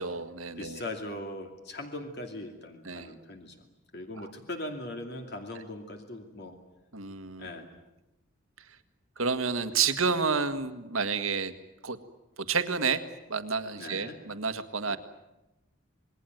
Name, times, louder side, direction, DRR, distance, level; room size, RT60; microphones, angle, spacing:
voice 1, 0.0-0.8 2.8-3.1 6.9-7.5 9.2-11.5 11.8-12.0 12.5-13.0 13.3-15.0, right 5 dB, 85° right, 11 dB, 1.7 m, -30 dB
voice 2, 0.6-3.6 3.9-6.6 7.4-7.7 13.8-14.2, left 1 dB, 50° left, 4 dB, 2.6 m, -40 dB
27.5 x 21.0 x 9.3 m, 0.98 s
head